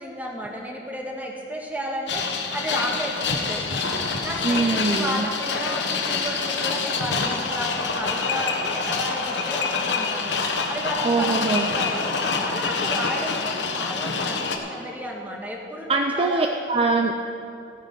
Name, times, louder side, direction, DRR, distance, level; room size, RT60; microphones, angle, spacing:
voice 1, 0.0-10.4 10.7-12.1 12.4-16.4 16.8-17.1, equal, 10° right, 0 dB, 1.6 m, -33 dB
sound 1, 2.1-14.6, left 4 dB, 85° left, 1.2 m, -26 dB
voice 2, 4.4-5.3 11.0-11.7 15.9-17.1, right 3 dB, 35° right, 3 dB, 0.5 m, -22 dB
14.5 x 9.5 x 5.4 m, 2.6 s
head